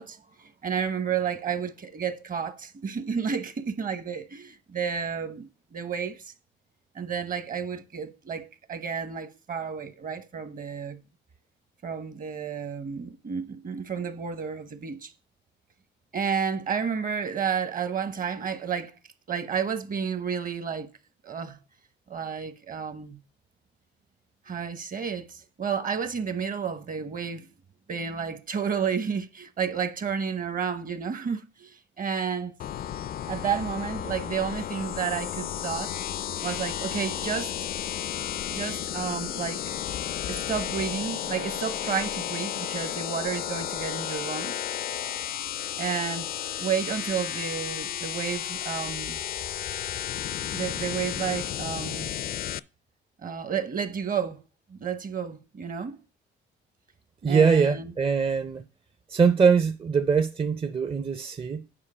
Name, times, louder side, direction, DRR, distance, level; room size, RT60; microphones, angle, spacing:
voice 1, 0.0-6.3 6.9-11.0 11.8-15.1 16.1-18.9 19.3-20.9 21.2-21.6 22.1-23.2 24.5-27.5 27.9-32.6 33.3-36.0 36.4-37.5 38.5-39.6 40.3-44.6 45.8-46.3 46.6-49.2 50.5-52.1 53.2-54.4 54.7-56.0 57.3-57.9, right 7 dB, 45° right, 1.0 m, -31 dB
sound 1, 32.6-52.6, left 10 dB, 50° left, 0.4 m, -33 dB
voice 2, 57.2-58.6 59.1-61.6, right 5 dB, 25° right, 0.5 m, -22 dB
8.8 x 5.2 x 4.9 m
cardioid pair, 90°, 20 cm